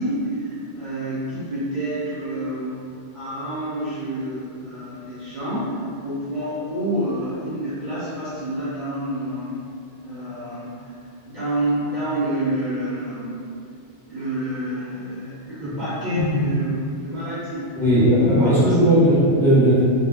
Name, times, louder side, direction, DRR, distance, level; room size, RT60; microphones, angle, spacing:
voice 1, 0.0-2.8 3.1-9.6 10.0-11.0 11.3-13.4 14.1-17.7 18.2-18.8, right 1 dB, 50° right, -12 dB, 0.7 m, -27 dB
voice 2, 17.7-19.8, equal, ahead, -12 dB, 0.8 m, -17 dB
2.3 x 2.2 x 3.3 m, 2.4 s
omnidirectional pair, 1.2 m